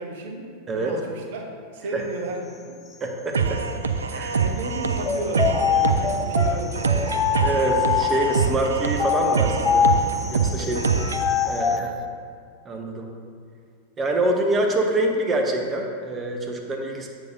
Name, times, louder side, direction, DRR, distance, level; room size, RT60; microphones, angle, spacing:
voice 1, 0.0-1.4 1.7-2.8 4.4-7.3 10.6-10.9, right 3 dB, 55° right, 2 dB, 0.9 m, -34 dB
voice 2, 3.0-3.6 4.1-4.5 7.4-9.9 10.3-10.8 11.4-12.0 12.6-13.1 14.0-17.1, right 2 dB, 20° right, 2 dB, 0.9 m, -25 dB
sound 1, 3.3-11.3, right 5 dB, 70° right, 0.4 m, -25 dB
sound 2, 5.0-8.4 8.9-11.8, left 7 dB, 20° left, 0.3 m, -24 dB
8.3 x 6.4 x 2.7 m, 2.2 s
figure-of-eight pair, 90°, 0 cm